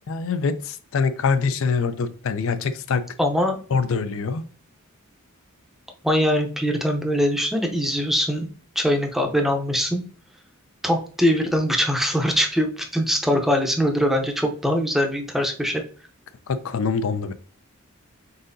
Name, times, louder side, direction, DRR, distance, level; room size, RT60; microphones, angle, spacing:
voice 1, 0.1-3.1 3.7-4.4 16.5-17.3, left 5 dB, 65° left, 12 dB, 0.4 m, -24 dB
voice 2, 3.2-3.6 6.0-8.5 8.8-10.0 10.8-15.8, equal, ahead, 3 dB, 0.6 m, -22 dB
4.0 x 3.7 x 2.6 m, 0.41 s
head